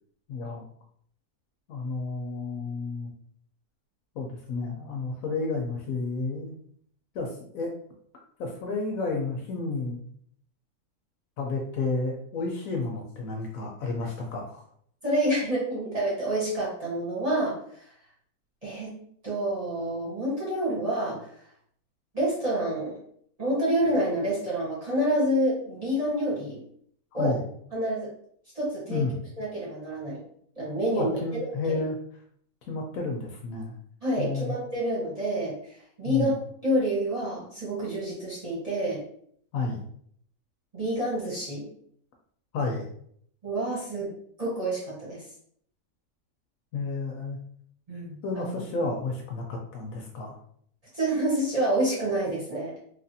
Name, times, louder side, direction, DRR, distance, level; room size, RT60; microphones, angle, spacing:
voice 1, 0.3-0.7 1.7-3.1 4.2-6.6 7.1-7.7 8.4-10.0 11.4-14.6 27.1-27.4 28.9-29.2 31.0-32.0 32.6-33.7 34.2-34.5 36.0-36.3 39.5-39.8 42.5-42.9 46.7-47.4 48.2-50.4, left 3 dB, 70° left, 1 dB, 0.9 m, -31 dB
voice 2, 15.0-17.9 18.6-18.9 19.2-21.3 22.1-22.9 23.4-26.6 27.1-27.3 27.7-28.1 28.5-29.0 29.4-30.2 30.6-31.4 31.7-31.8 34.0-35.6 36.0-39.0 40.7-41.7 43.4-44.1 44.4-45.2 47.9-48.4 50.9-52.7, right 1 dB, 25° right, -8 dB, 1.0 m, -28 dB
3.1 x 2.4 x 2.7 m, 0.63 s
omnidirectional pair, 1.6 m